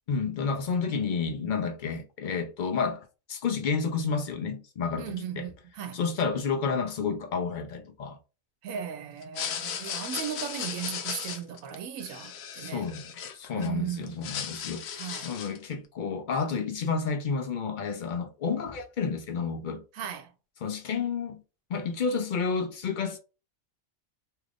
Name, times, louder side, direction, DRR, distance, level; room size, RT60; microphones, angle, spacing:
voice 1, 0.1-5.5 5.9-8.2 12.6-19.8 20.6-21.4 21.7-23.2, left 5 dB, 65° left, 0.5 m, -30 dB
voice 2, 5.0-6.0 8.6-12.9 13.5-14.4 14.9-15.3 19.9-20.3, right 9 dB, 75° right, 1.0 m, -37 dB
sound 1, 9.2-13.7 14.0-15.7, left 8 dB, 80° left, 1.0 m, -36 dB
2.8 x 2.4 x 3.4 m
omnidirectional pair, 1.4 m